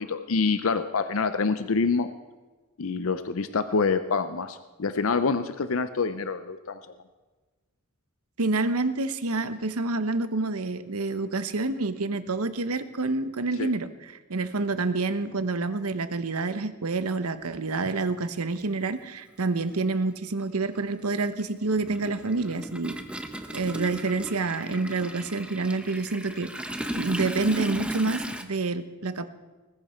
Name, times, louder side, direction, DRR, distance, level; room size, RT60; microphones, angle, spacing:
voice 1, 0.0-2.1 2.8-6.8 13.6-13.7, left 4 dB, 65° left, 11 dB, 0.6 m, -26 dB
voice 2, 8.4-22.9 23.5-26.5 26.9-29.3, right 3 dB, 90° right, 12 dB, 1.0 m, -28 dB
Toilet flush, 17.9-18.0 19.3-19.5 19.8-28.4, right 1 dB, 5° right, 1.0 m, -36 dB
20.5 x 14.0 x 4.4 m, 1.3 s
head